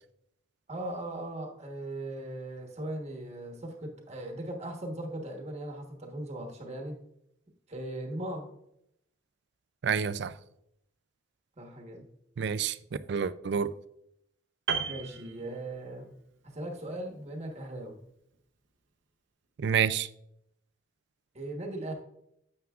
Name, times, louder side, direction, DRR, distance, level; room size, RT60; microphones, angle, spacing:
voice 1, 0.7-7.0 7.7-8.5 11.6-12.0 14.9-16.1 16.4-18.0 21.3-21.9, right 1 dB, 35° right, 1.1 m, -38 dB
voice 2, 9.8-10.3 12.4-12.8 13.1-13.7 19.6-20.1, right 7 dB, 60° right, 0.4 m, -28 dB
Piano, 14.7-16.1 16.4-16.6, right 6 dB, 75° right, 0.8 m, -34 dB
9.4 x 7.2 x 2.4 m
head